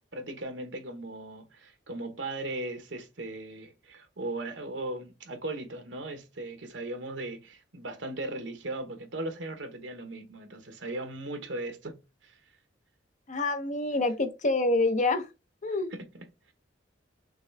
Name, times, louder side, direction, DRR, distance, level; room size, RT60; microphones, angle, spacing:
voice 1, 0.1-12.4 15.9-16.5, right 2 dB, 75° right, 1.1 m, -38 dB
voice 2, 13.3-15.2 15.6-15.9, left 2 dB, 40° left, 0.8 m, -26 dB
6.0 x 2.3 x 3.3 m
head